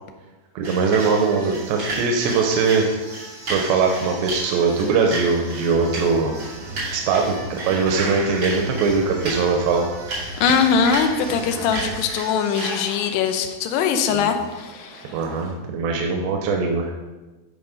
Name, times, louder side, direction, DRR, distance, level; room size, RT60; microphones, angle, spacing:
sound 1, 0.6-15.5, right 2 dB, 35° right, 2.9 m, -34 dB
voice 1, 0.6-2.9 3.5-6.4 6.9-9.9 14.1-14.3 15.1-16.9, right 4 dB, 90° right, 2 dB, 2.9 m, -21 dB
sound 2, 5.6-12.0, right 2 dB, 60° right, 3.1 m, -35 dB
voice 2, 10.4-15.1, left 6 dB, 80° left, 6 dB, 2.8 m, -21 dB
11.5 x 4.3 x 5.3 m, 1.2 s
omnidirectional pair, 5.0 m